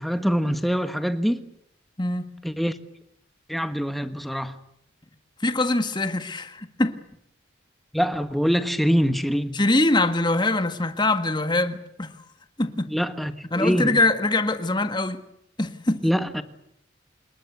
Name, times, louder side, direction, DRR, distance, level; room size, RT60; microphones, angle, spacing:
voice 1, 0.0-1.4 2.4-2.8 3.5-4.6 7.9-9.6 12.9-14.0 16.0-16.4, equal, ahead, 1.5 m, -24 dB
voice 2, 2.0-2.3 5.4-7.0 9.5-12.2 12.6-13.0 13.5-15.3 15.6-16.1, left 2 dB, 25° left, 1.6 m, -23 dB
27.0 x 22.0 x 8.2 m
head